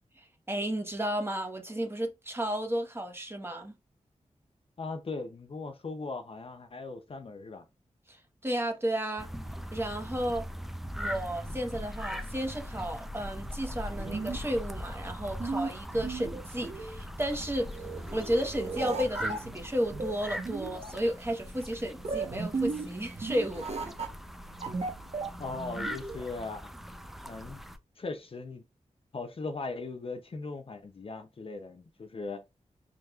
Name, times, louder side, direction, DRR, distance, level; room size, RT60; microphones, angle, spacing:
voice 1, 0.2-3.7 8.1-9.3 9.7-10.5 11.0-17.7 18.1-23.7, equal, 20° right, 1.0 m, -33 dB
voice 2, 4.8-7.6 25.4-26.7 27.2-27.6 28.0-28.6 29.1-32.4, left 3 dB, 50° left, 0.6 m, -39 dB
sound 1, 9.2-27.8, equal, ahead, 0.5 m, -41 dB
sound 2, 13.7-26.3, right 4 dB, 60° right, 1.0 m, -37 dB
5.1 x 3.1 x 2.3 m
wide cardioid pair, 80°, 13 cm